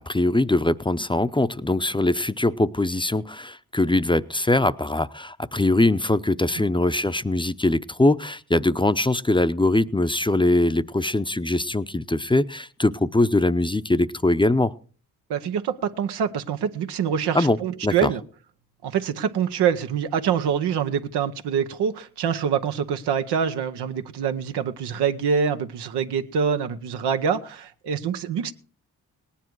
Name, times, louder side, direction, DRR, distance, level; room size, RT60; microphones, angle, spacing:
voice 1, 0.1-14.7 17.3-17.6 17.8-18.1, left 2 dB, 10° left, 13 dB, 0.6 m, -22 dB
voice 2, 15.3-18.2 18.8-28.5, right 7 dB, 90° right, 8 dB, 0.9 m, -25 dB
18.0 x 10.0 x 4.6 m, 0.40 s
supercardioid pair, 45°, 39 cm